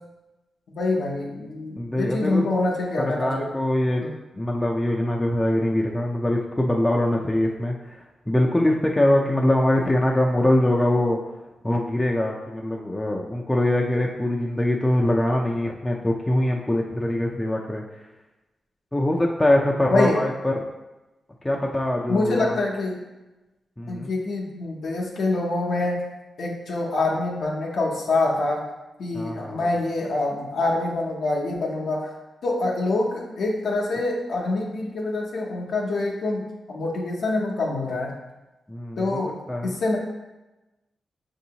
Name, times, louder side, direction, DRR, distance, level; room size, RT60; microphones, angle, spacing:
voice 1, 0.8-3.5 4.0-4.1 19.9-20.2 22.1-23.0 23.9-26.0 26.4-28.6 29.0-32.1 32.4-38.2 39.0-39.3 39.6-40.0, left 2 dB, 75° left, -3 dB, 0.7 m, -25 dB
voice 2, 1.8-2.5 3.2-4.0 4.3-11.2 11.6-18.0 18.9-20.5 21.4-22.6 23.8-24.1 29.1-29.7 38.7-39.7, left 1 dB, 15° left, -1 dB, 0.5 m, -23 dB
5.9 x 2.7 x 2.8 m, 1.0 s
cardioid pair, 70°, 0 cm